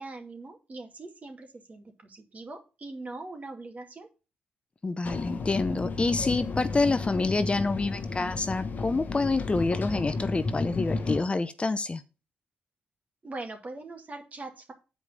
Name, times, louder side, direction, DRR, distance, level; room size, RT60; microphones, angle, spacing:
voice 1, 0.0-4.1 13.2-14.7, right 2 dB, 40° right, 4 dB, 2.4 m, -41 dB
voice 2, 4.8-12.0, left 3 dB, 30° left, 12 dB, 0.6 m, -27 dB
sound 1, 5.0-11.2, left 3 dB, 50° left, 1.4 m, -33 dB
7.2 x 4.9 x 6.9 m, 0.32 s
supercardioid pair, 55°, 4 cm